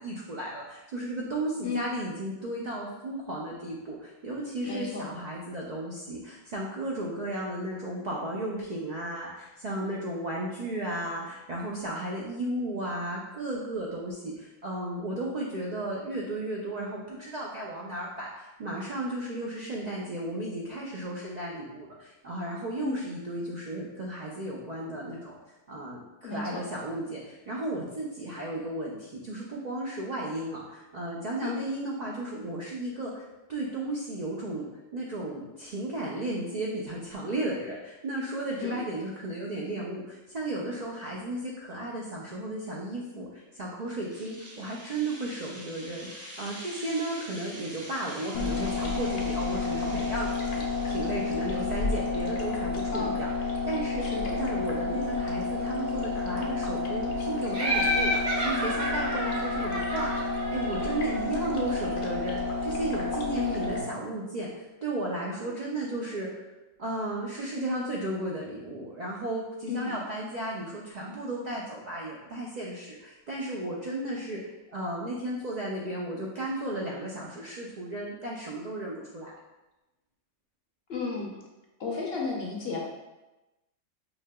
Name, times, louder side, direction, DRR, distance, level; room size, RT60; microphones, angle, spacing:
voice 1, 0.0-25.4 25.7-34.6 34.9-50.3 50.8-53.3 53.6-54.0 54.3-66.5 66.8-79.3, right 1 dB, 75° right, -3 dB, 0.4 m, -34 dB
voice 2, 4.6-5.0 22.8-23.0 26.2-26.6 31.4-31.6 38.6-38.8 52.9-53.1 54.0-54.2 63.3-63.6 69.7-69.9 80.9-81.3 81.8-82.8, left 5 dB, 60° left, -2 dB, 0.8 m, -33 dB
sound 1, 43.9-51.8, equal, 15° right, 0.5 m, -45 dB
sound 2, 48.3-63.8, left 3 dB, 85° left, 1.0 m, -30 dB
Laughter, 57.5-61.2, equal, 60° right, 1.0 m, -30 dB
4.9 x 2.7 x 2.2 m, 1.0 s
omnidirectional pair, 1.4 m